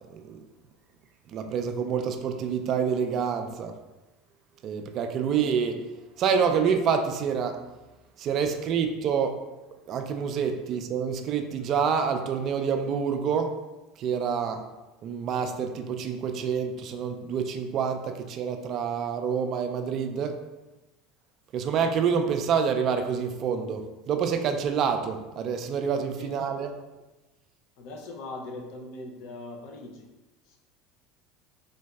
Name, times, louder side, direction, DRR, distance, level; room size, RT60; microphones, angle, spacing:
voice 1, 1.3-3.7 4.6-5.8 6.2-7.6 8.2-9.4 9.9-13.5 14.0-14.6 15.0-20.3 21.5-26.7, right 6 dB, 50° right, 6 dB, 0.3 m, -27 dB
voice 2, 26.2-26.7 27.8-30.1 30.5-30.6, left 2 dB, 65° left, 2 dB, 0.5 m, -41 dB
3.8 x 2.6 x 2.2 m, 1.1 s
hypercardioid pair, 80°, 0 cm